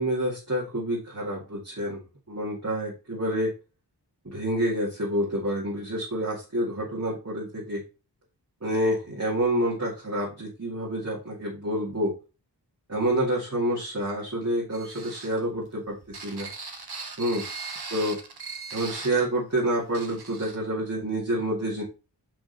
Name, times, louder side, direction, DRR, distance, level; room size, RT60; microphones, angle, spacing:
voice 1, 0.0-2.0 2.3-3.5 4.2-7.8 8.6-12.1 12.9-16.0 16.2-16.5 17.2-17.4 17.9-18.2 18.7-21.8, right 1 dB, 40° right, -6 dB, 2.5 m, -28 dB
sound 1, 14.7-19.2 19.6-19.7 19.9-20.6, right 4 dB, 65° right, 1.3 m, -39 dB
5.8 x 5.1 x 4.1 m, 0.32 s
wide cardioid pair, 60°, 41 cm